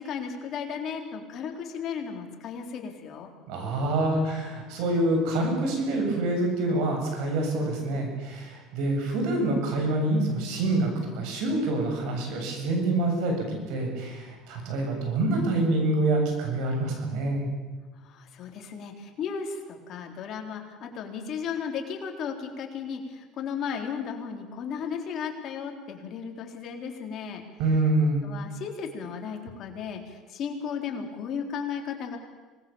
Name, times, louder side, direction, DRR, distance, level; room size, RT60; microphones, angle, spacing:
voice 1, 0.0-3.3 17.9-27.4 28.2-32.2, left 6 dB, 50° left, 3 dB, 3.8 m, -35 dB
voice 2, 3.5-17.5 27.6-28.2, right 2 dB, 75° right, 3 dB, 7.7 m, -26 dB
25.5 x 19.5 x 7.3 m, 1.3 s
cardioid pair, 125°, 0 cm